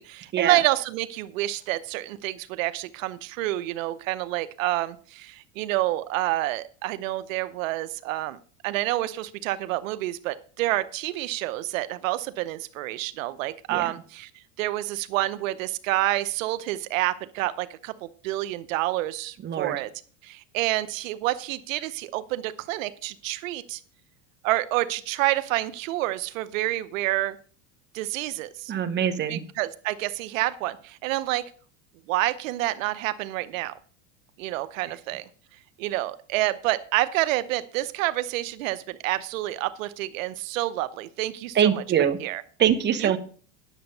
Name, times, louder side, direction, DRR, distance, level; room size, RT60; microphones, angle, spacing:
voice 1, 0.0-8.4 8.6-14.3 14.6-19.9 20.2-23.8 24.4-27.4 27.9-28.7 29.3-31.5 32.1-33.7 34.4-35.2 35.8-41.7 42.2-42.4 43.0-43.2, right 16 dB, 85° right, 14 dB, 0.8 m, -28 dB
voice 2, 19.4-19.8 28.7-29.4 41.5-42.2 42.6-43.2, right 9 dB, 25° right, 8 dB, 1.2 m, -23 dB
10.0 x 6.9 x 6.7 m, 0.43 s
supercardioid pair, 130°, 39 cm